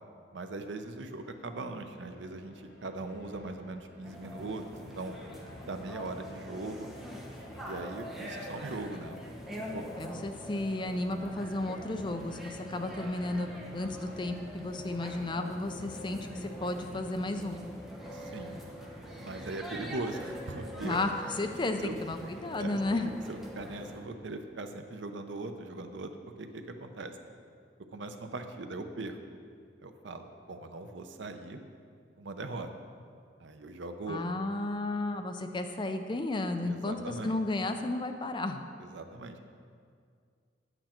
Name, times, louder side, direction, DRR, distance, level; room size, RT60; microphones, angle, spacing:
voice 1, 0.3-5.1 5.7-6.9 7.6-9.2 9.7-9.8 18.1-18.6 19.2-21.0 21.8-22.0 22.6-23.0 23.3-26.1 26.4-27.1 27.9-29.2 29.8-31.6 32.2-32.7 33.4-34.3 36.6-37.4 38.8-39.4, right 2 dB, 85° right, 7 dB, 0.7 m, -40 dB
sound 1, 1.0-17.8, equal, 55° left, 1.5 m, -54 dB
sound 2, 4.0-24.0, equal, ahead, 1.0 m, -44 dB
voice 2, 10.0-17.6 20.8-21.1 21.4-23.1 34.1-38.6, left 2 dB, 25° left, 6 dB, 0.5 m, -33 dB
8.7 x 8.0 x 4.4 m, 2.2 s
head